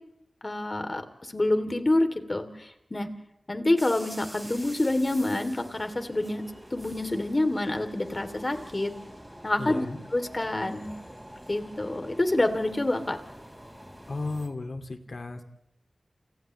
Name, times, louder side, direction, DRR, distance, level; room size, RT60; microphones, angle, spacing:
voice 1, 0.4-3.1 3.5-6.4 6.7-8.9 9.4-9.9 10.1-10.9 11.5-13.2, left 1 dB, 35° left, 7 dB, 3.0 m, -27 dB
sound 1, 3.8-14.5, equal, 5° right, 5.1 m, -46 dB
voice 2, 9.6-10.0 14.1-15.4, left 3 dB, 65° left, 6 dB, 2.4 m, -34 dB
29.5 x 29.0 x 3.2 m, 0.84 s
wide cardioid pair, 60°, 0 cm